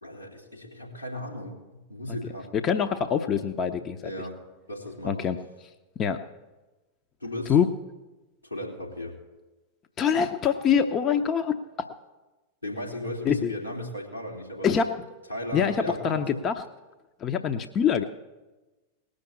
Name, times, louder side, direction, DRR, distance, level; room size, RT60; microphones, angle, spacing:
voice 1, 0.0-2.5 4.0-4.4 4.7-5.3 7.2-7.6 8.4-9.2 12.6-14.9 15.3-16.4, left 1 dB, 90° left, -3 dB, 3.3 m, -36 dB
voice 2, 2.5-4.1 5.0-5.7 6.0-6.2 7.5-7.7 10.0-11.9 13.2-13.5 14.6-14.9 15.5-16.7 17.2-18.0, left 7 dB, 30° left, 7 dB, 0.8 m, -25 dB
19.0 x 6.5 x 8.5 m, 1.1 s
figure-of-eight pair, 90°, 0 cm